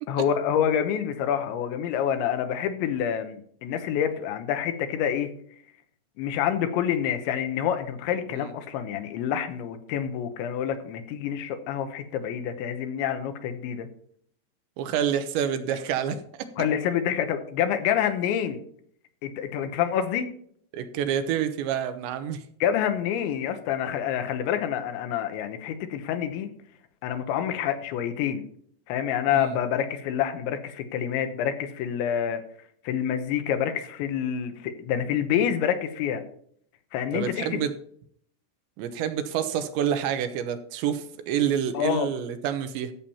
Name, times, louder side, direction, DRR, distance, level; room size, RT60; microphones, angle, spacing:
voice 1, 0.1-5.3 6.2-13.9 16.6-18.6 19.2-20.3 22.6-26.5 27.0-28.5 28.9-32.4 32.9-36.2 36.9-37.6 41.8-42.1, left 9 dB, 85° left, 8 dB, 3.4 m, -27 dB
voice 2, 14.8-16.5 20.7-22.4 29.3-29.6 37.1-37.7 38.8-42.9, right 9 dB, 85° right, 9 dB, 3.2 m, -28 dB
14.0 x 7.2 x 4.3 m, 0.63 s
omnidirectional pair, 5.1 m